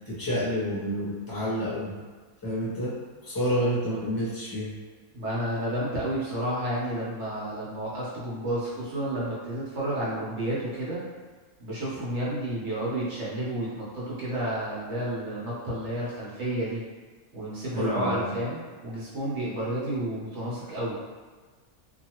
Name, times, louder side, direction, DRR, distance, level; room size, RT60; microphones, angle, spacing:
voice 1, 0.1-1.9 2.4-4.7 17.7-18.3, equal, 20° left, -8 dB, 0.7 m, -29 dB
voice 2, 5.1-11.0 11.6-16.8 17.3-20.9, right 1 dB, 55° right, -7 dB, 1.2 m, -31 dB
2.8 x 2.6 x 2.9 m, 1.4 s
omnidirectional pair, 1.5 m